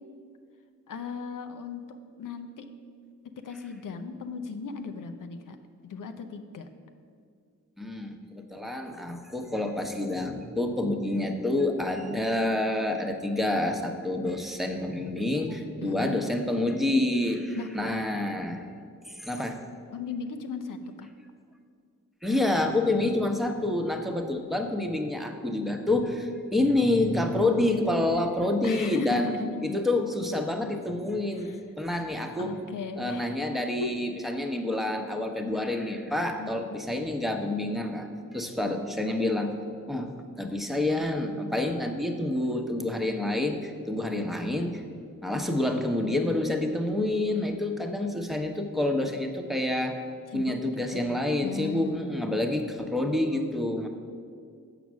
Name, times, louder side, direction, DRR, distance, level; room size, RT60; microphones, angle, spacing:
voice 1, 0.9-1.8 2.2-2.7 3.4-5.6 5.8-6.7 15.8-16.2 17.6-17.7 19.9-21.1 28.6-29.9 31.4-31.6 32.4-33.3 33.8-33.9 36.4-36.9 50.3-50.6 50.9-52.4, left 5 dB, 70° left, 7 dB, 0.8 m, -37 dB
voice 2, 7.8-18.6 19.1-19.6 22.2-29.3 29.6-32.6 33.0-39.5 39.9-44.8 45.2-50.0 50.3-53.9, left 1 dB, ahead, 3 dB, 1.0 m, -28 dB
7.3 x 6.0 x 6.3 m, 2.2 s
cardioid pair, 45°, 33 cm